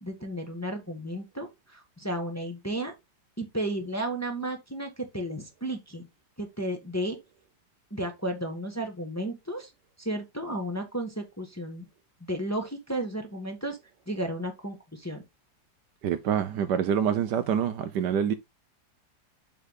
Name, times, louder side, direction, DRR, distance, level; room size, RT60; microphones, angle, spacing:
voice 1, 0.0-2.9 3.4-6.1 6.4-7.2 7.9-9.7 10.0-11.8 12.2-13.8 14.1-15.2, right 1 dB, 10° left, 1.2 m, -33 dB
voice 2, 16.0-18.3, right 8 dB, 70° right, 1.2 m, -26 dB
7.2 x 4.4 x 3.7 m
omnidirectional pair, 2.1 m